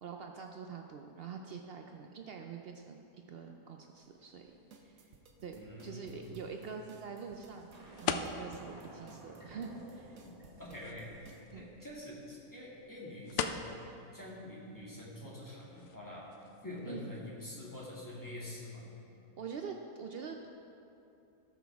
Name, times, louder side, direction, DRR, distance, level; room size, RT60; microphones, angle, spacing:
voice 1, 0.0-4.5 4.8-5.0 5.4-7.7 8.0-10.2 11.5-11.7 16.9-17.1 19.4-20.4, right 6 dB, 85° right, 3 dB, 0.5 m, -45 dB
sound 1, 3.9-17.2, left 7 dB, 70° left, 0.7 m, -45 dB
sound 2, 4.7-11.4, right 4 dB, 65° right, 1.2 m, -59 dB
voice 2, 5.5-6.3 9.4-9.5 10.2-11.3 11.5-13.8 14.1-16.2 16.6-18.9, left 1 dB, 10° left, -7 dB, 2.2 m, -46 dB
sound 3, 7.7-12.1, right 2 dB, 25° right, 1.2 m, -54 dB
18.0 x 6.1 x 3.5 m, 2.8 s
omnidirectional pair, 1.7 m